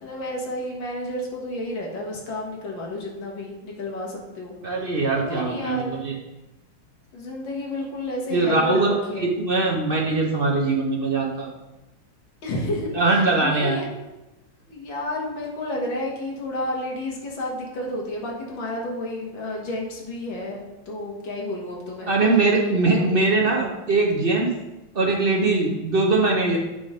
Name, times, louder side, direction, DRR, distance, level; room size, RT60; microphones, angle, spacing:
voice 1, 0.0-4.6 5.1-6.0 7.1-9.3 12.4-13.8 14.7-22.1 22.9-23.1, left 1 dB, 65° left, -2 dB, 2.2 m, -31 dB
voice 2, 4.6-6.2 8.3-11.5 12.9-13.8 22.1-24.5 24.9-26.6, right 3 dB, 55° right, -2 dB, 0.6 m, -21 dB
8.6 x 3.7 x 5.0 m, 1.0 s
omnidirectional pair, 2.3 m